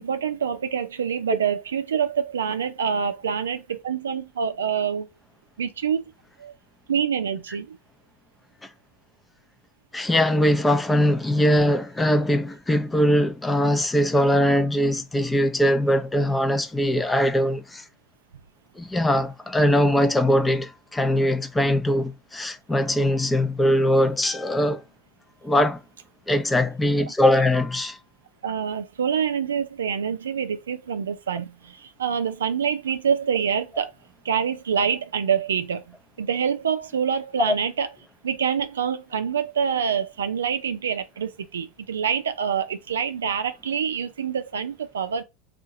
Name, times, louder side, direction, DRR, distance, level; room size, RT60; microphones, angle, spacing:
voice 1, 0.0-5.1 5.6-6.0 6.4-6.5 6.9-7.8 28.4-33.9 34.2-37.9 38.2-45.2, right 7 dB, 85° right, 0.4 m, -26 dB
voice 2, 9.9-17.8 18.8-24.8 25.4-25.8 26.3-28.0 37.5-37.6, left 1 dB, 10° left, 0.6 m, -21 dB
2.8 x 2.4 x 3.7 m
hypercardioid pair, 85°, 0 cm